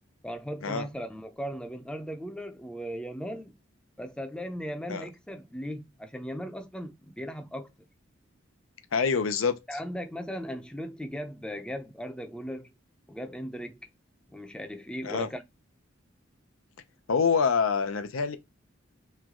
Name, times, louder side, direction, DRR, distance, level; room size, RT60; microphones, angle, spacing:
voice 1, 0.2-3.5 4.0-7.7 9.7-12.7 13.1-13.9 14.3-15.4, equal, 5° left, 0.5 m, -37 dB
voice 2, 8.9-9.6 15.0-15.3 17.1-18.4, left 5 dB, 85° left, 0.6 m, -26 dB
3.3 x 2.9 x 3.7 m
head